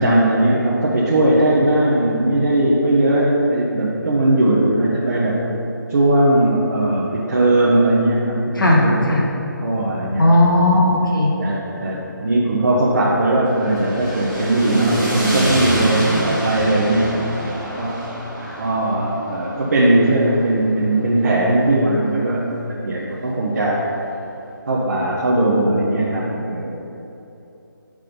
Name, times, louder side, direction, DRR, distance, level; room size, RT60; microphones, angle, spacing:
voice 1, 0.0-5.4 5.9-9.0 9.6-10.4 11.4-17.2 17.7-18.0 18.6-22.5 22.8-23.8 24.7-26.8, right 1 dB, 50° right, -5 dB, 0.8 m, -18 dB
voice 2, 8.5-9.3 10.2-11.3, left 1 dB, 75° left, -2 dB, 1.4 m, -15 dB
sound 1, 13.5-21.7, equal, ahead, 1.1 m, -27 dB
6.0 x 3.6 x 5.1 m, 3.0 s
figure-of-eight pair, 170°, 11 cm